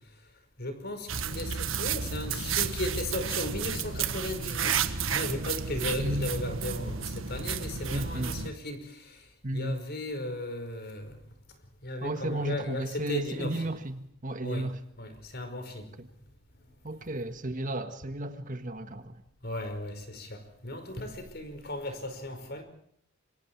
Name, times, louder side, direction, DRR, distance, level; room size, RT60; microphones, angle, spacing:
voice 1, 0.6-9.2 9.5-11.2 11.8-13.7 14.4-15.9 19.4-22.6, left 1 dB, 50° left, 5.2 m, -36 dB
sound 1, 1.1-8.5, right 6 dB, 70° right, 1.5 m, -32 dB
voice 2, 6.0-6.3 7.9-8.4 9.4-9.8 12.0-14.7 16.0-16.1 16.8-19.2, right 1 dB, 40° right, 1.6 m, -33 dB
28.0 x 24.5 x 4.7 m
head